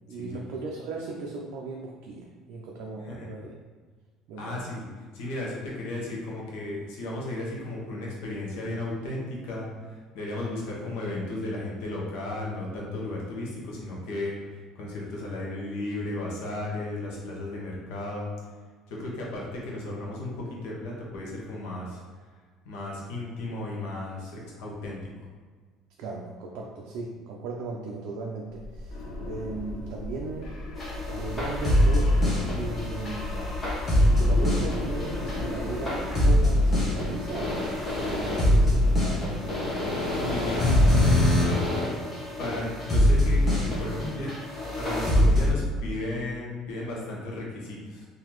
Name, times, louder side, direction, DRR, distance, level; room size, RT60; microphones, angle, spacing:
voice 1, 0.1-3.5 4.3-4.6 26.0-30.5 31.1-33.7 34.0-37.7 38.1-39.7, right 3 dB, 70° right, -2 dB, 0.4 m, -37 dB
voice 2, 4.4-4.9 5.1-18.3 18.9-22.0 22.6-25.0 40.2-41.6 42.4-48.1, left 1 dB, 85° left, -3 dB, 1.0 m, -35 dB
sound 1, 28.5-41.3, left 2 dB, 60° left, 0.9 m, -37 dB
sound 2, 30.8-45.5, left 1 dB, 25° left, 1.0 m, -24 dB
3.8 x 2.7 x 3.0 m, 1.5 s
cardioid pair, 155°, 0 cm